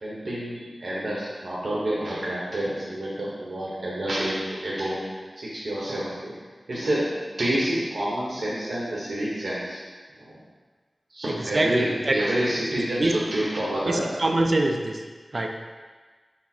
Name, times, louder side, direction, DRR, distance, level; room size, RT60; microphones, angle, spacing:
voice 1, 0.0-5.0 5.4-6.3 6.7-9.8 10.2-10.4 11.1-14.0, right 1 dB, 75° right, -7 dB, 0.9 m, -28 dB
voice 2, 11.5-12.1 13.0-13.1 13.9-15.0 15.3-15.5, right 2 dB, 50° right, 3 dB, 0.4 m, -24 dB
6.1 x 2.1 x 4.3 m, 1.4 s
wide cardioid pair, 75°, 0 cm